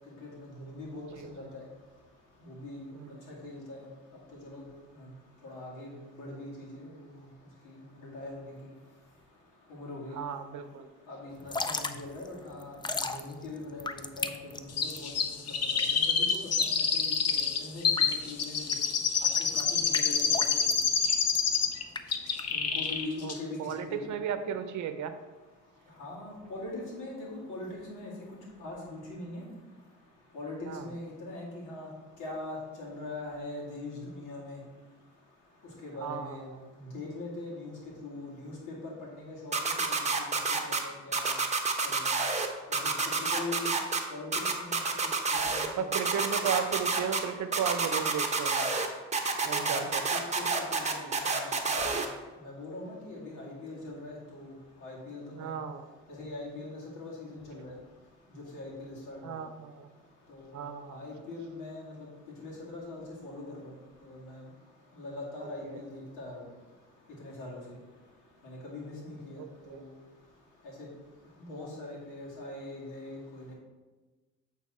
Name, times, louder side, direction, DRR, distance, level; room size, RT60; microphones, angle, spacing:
voice 1, 0.2-1.6 2.4-2.9 3.3-3.8 4.4-4.6 4.9-5.1 5.4-7.2 7.6-8.5 9.7-10.2 11.1-15.4 15.9-18.7 19.4-20.8 22.5-23.6 23.9-24.1 26.0-28.1 28.6-29.4 30.3-31.9 32.2-34.6 35.8-36.5 36.8-37.7 38.0-39.6 40.1-41.3 41.8-42.1 42.7-42.9 43.2-43.8 44.1-44.3 44.6-44.8 45.3-45.9 49.5-49.9 50.3-50.4 50.7-51.4 51.8-52.0 52.4-54.5 54.8-55.5 56.1-57.7 58.5-59.4 60.3-62.1 62.4-63.7 64.0-64.4 64.9-66.4 67.2-67.6 68.4-69.4 69.7-69.9 70.8-70.9 71.4-73.5, left 2 dB, 90° left, -4 dB, 2.4 m, -42 dB
voice 2, 10.2-10.9 23.2-23.3 23.6-25.2 30.7-30.9 36.0-36.6 39.7-39.9 45.8-48.8 49.4-50.0 55.4-55.9 59.2-59.9 60.5-61.0 65.6-65.8 69.4-69.8, right 8 dB, 70° right, 10 dB, 0.7 m, -35 dB
Drip / Trickle dribble, 11.3-22.9, left 3 dB, 15° left, 0.4 m, -38 dB
Chirp tweet, 14.8-21.8 22.1-23.0 23.3-23.4, left 6 dB, 55° left, 0.8 m, -27 dB
sound 1, 39.5-40.8 41.1-42.5 42.7-44.0 44.3-45.7 45.9-47.2 47.5-48.9 49.1-52.1, right 4 dB, 25° right, 0.9 m, -28 dB
8.3 x 4.0 x 4.3 m, 1.2 s
cardioid pair, 90°, 30 cm